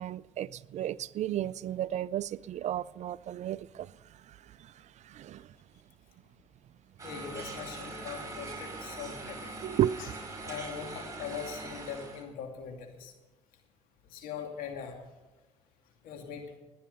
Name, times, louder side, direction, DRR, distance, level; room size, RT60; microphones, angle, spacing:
voice 1, 0.0-3.9 5.1-5.4 9.6-10.2, right 11 dB, 55° right, 0.4 m, -33 dB
voice 2, 7.0-9.6 10.0-10.1 10.4-13.1 14.0-15.0 16.0-16.5, left 7 dB, 75° left, 2.6 m, -41 dB
sound 1, 7.0-12.2, right 3 dB, 20° right, 5.3 m, -42 dB
19.0 x 10.5 x 5.4 m
supercardioid pair, 75°, 14 cm